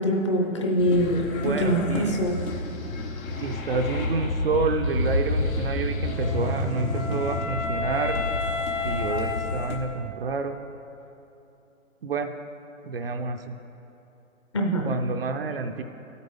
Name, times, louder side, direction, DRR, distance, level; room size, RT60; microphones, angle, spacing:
voice 1, 0.0-2.4 14.5-14.9, equal, 20° left, 1 dB, 0.6 m, -24 dB
sound 1, 0.8-9.8, left 2 dB, 85° left, 1.6 m, -29 dB
voice 2, 1.3-2.2 3.4-8.2 8.8-10.6 12.0-12.3 12.8-13.6 14.8-15.8, right 4 dB, 45° right, 6 dB, 0.5 m, -29 dB
Wind instrument woodwind instrument, 6.2-10.4, left 3 dB, 55° left, 1.2 m, -32 dB
14.5 x 8.2 x 3.4 m, 3.0 s
hypercardioid pair, 160°, 41 cm